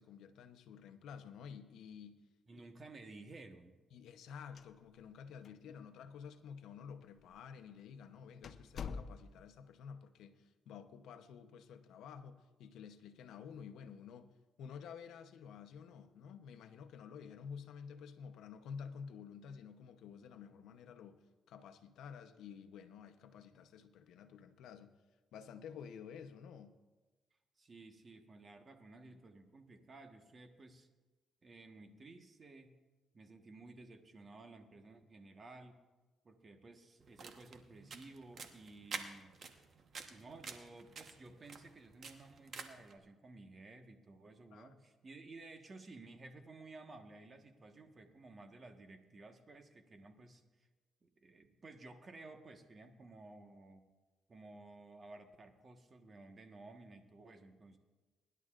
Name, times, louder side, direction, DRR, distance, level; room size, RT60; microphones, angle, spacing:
voice 1, 0.0-2.2 3.9-14.3 14.6-21.2 21.5-25.0 25.3-26.7 44.5-44.7, left 7 dB, 80° left, 8 dB, 0.8 m, -51 dB
voice 2, 2.5-3.8 5.5-5.7 27.6-30.9 31.4-32.7 33.1-35.8 36.2-39.4 40.1-50.7 51.0-53.9 54.3-57.8, right 2 dB, 35° right, 5 dB, 1.4 m, -55 dB
sound 1, 4.4-5.2 5.4-5.5 6.3-6.4 7.2-7.4 7.8-7.9 8.4-9.6, left 6 dB, 55° left, 0.5 m, -46 dB
sound 2, 37.0-42.9, right 5 dB, 55° right, 1.1 m, -49 dB
23.5 x 11.0 x 2.5 m, 1.2 s
cardioid pair, 90°, 0 cm